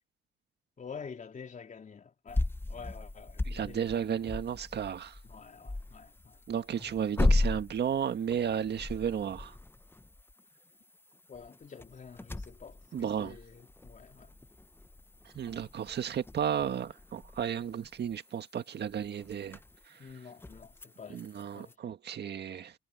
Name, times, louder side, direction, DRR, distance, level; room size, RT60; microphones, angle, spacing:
voice 1, 0.8-2.4 2.7-3.9 5.3-6.4 11.3-14.3 20.0-21.2 21.5-21.7, left 6 dB, 40° left, 3.5 m, -48 dB
sound 1, 2.3-21.7, left 2 dB, 10° left, 0.8 m, -37 dB
voice 2, 3.5-5.2 6.5-9.5 12.9-13.4 15.4-19.6 19.9-20.1 21.1-22.7, right 8 dB, 55° right, 1.7 m, -33 dB
cardioid pair, 90°, 20 cm